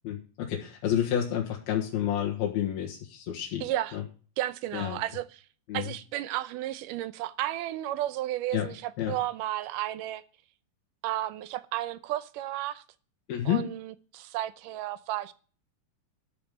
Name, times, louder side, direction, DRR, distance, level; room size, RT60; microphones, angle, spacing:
voice 1, 0.0-3.6 3.9-4.0 4.7-5.0 5.7-5.9 8.5-8.7 9.0-9.2 13.3-13.7, left 10 dB, 85° left, 3.5 m, -29 dB
voice 2, 3.6-4.0 4.4-5.4 5.7-10.2 11.0-12.8 13.5-15.3, right 14 dB, 75° right, 2.1 m, -33 dB
13.0 x 5.2 x 7.9 m
omnidirectional pair, 4.2 m